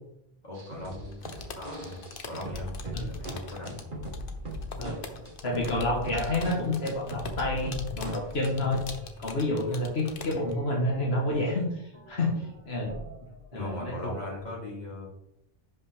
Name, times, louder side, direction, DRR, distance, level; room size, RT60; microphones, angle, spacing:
voice 1, 0.4-3.9 12.2-12.3 13.5-15.1, left 1 dB, 45° left, -4 dB, 3.0 m, -39 dB
sound 1, 0.5-9.0 9.3-9.4 9.7-11.6 11.9-14.4, equal, 55° right, 1.8 m, -41 dB
sound 2, 1.1-10.5, left 4 dB, 60° left, 1.1 m, -43 dB
voice 2, 5.4-8.8 9.2-11.8 12.1-12.3 12.7-12.9 13.5-13.9, left 2 dB, 80° left, -1 dB, 1.6 m, -29 dB
sound 3, 6.1-7.9 8.3-8.8, right 2 dB, 70° right, 1.2 m, -44 dB
10.5 x 5.6 x 3.5 m, 0.81 s
omnidirectional pair, 1.0 m